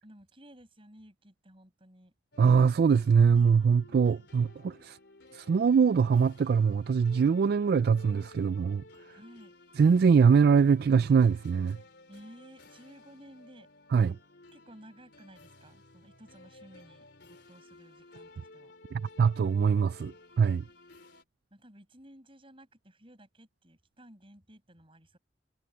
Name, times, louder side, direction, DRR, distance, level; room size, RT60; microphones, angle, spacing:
voice 1, 0.0-2.1 9.1-9.5 12.1-13.7 13.9-14.1 14.5-18.7 21.5-25.2, equal, 30° right, 7.7 m, -54 dB
sound 1, 2.3-21.2, left 2 dB, 70° left, 4.4 m, -55 dB
voice 2, 2.4-5.0 5.3-8.8 9.8-11.8 13.9-14.1 18.9-20.6, right 6 dB, 60° right, 0.3 m, -23 dB
head